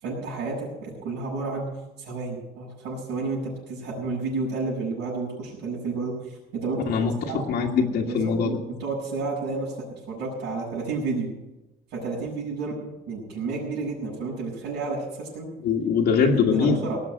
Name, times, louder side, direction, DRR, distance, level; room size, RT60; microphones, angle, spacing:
voice 1, 0.0-1.7 2.0-6.9 7.3-7.4 8.1-11.3 11.9-12.7 13.1-15.5 16.2-17.0, right 3 dB, 85° right, -9 dB, 6.6 m, -31 dB
voice 2, 6.9-8.6 15.6-16.8, left 5 dB, 70° left, -2 dB, 1.8 m, -22 dB
18.5 x 6.9 x 9.1 m, 1.0 s
cardioid pair, 145°, 18 cm